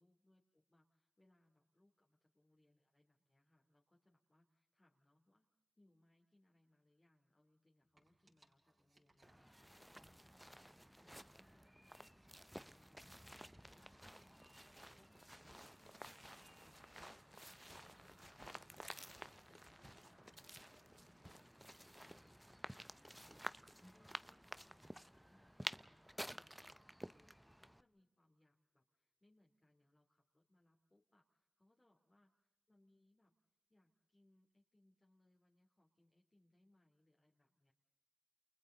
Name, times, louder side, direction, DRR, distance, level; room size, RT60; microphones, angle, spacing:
voice 1, 0.0-5.5 5.8-10.7 10.9-13.2 13.5-21.5 21.8-32.3 32.7-33.3 33.7-37.7, left 1 dB, 30° left, -1 dB, 3.1 m, -76 dB
sound 1, 7.8-10.5 10.9-15.2, right 2 dB, 50° right, 5.3 m, -75 dB
sound 2, 9.2-27.8, equal, 5° right, 0.7 m, -53 dB
Strum, 23.8-29.0, left 1 dB, 10° left, 1.5 m, -74 dB
30.0 x 28.5 x 4.0 m, 0.92 s
cardioid pair, 60°, 0 cm